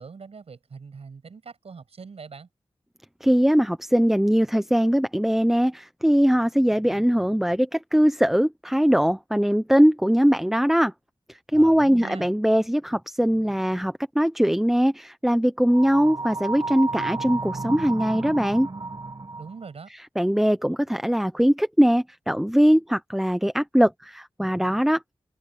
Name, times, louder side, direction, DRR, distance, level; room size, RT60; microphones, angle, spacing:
voice 1, 0.0-2.5 11.5-12.3 19.4-19.9, right 5 dB, 90° right, 6.7 m, -41 dB
voice 2, 3.2-10.9 11.5-18.7 20.2-25.0, equal, 5° right, 0.7 m, -21 dB
sound 1, 15.7-19.6, right 3 dB, 45° right, 1.6 m, -32 dB
wide cardioid pair, 90°, 10 cm